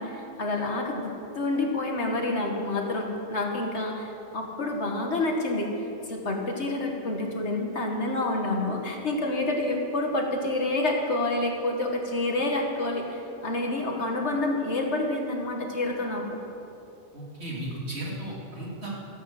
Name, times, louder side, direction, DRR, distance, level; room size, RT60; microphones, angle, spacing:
voice 1, 0.0-5.7 6.1-16.3, left 2 dB, 65° left, 1 dB, 2.1 m, -28 dB
voice 2, 17.1-18.9, right 1 dB, 60° right, -4 dB, 3.3 m, -35 dB
14.0 x 11.0 x 7.9 m, 2.8 s
omnidirectional pair, 1.3 m